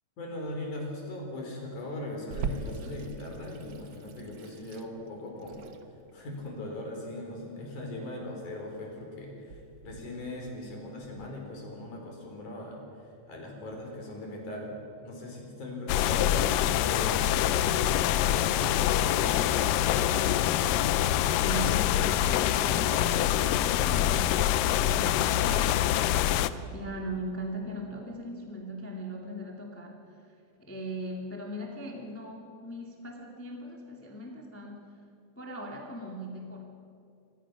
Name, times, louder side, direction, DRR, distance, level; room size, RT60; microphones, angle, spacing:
voice 1, 0.2-5.6 6.1-14.8 15.0-19.9, left 1 dB, 65° left, 1 dB, 5.5 m, -39 dB
Water tap faucet / Sink (filling or washing), 2.3-11.3, right 5 dB, 75° right, 1.1 m, -42 dB
sound 1, 15.9-26.5, left 12 dB, 85° left, 2.3 m, -25 dB
voice 2, 21.4-35.0 35.3-36.6, equal, 5° left, 0 dB, 1.6 m, -39 dB
25.5 x 20.0 x 6.1 m, 2.6 s
omnidirectional pair, 3.8 m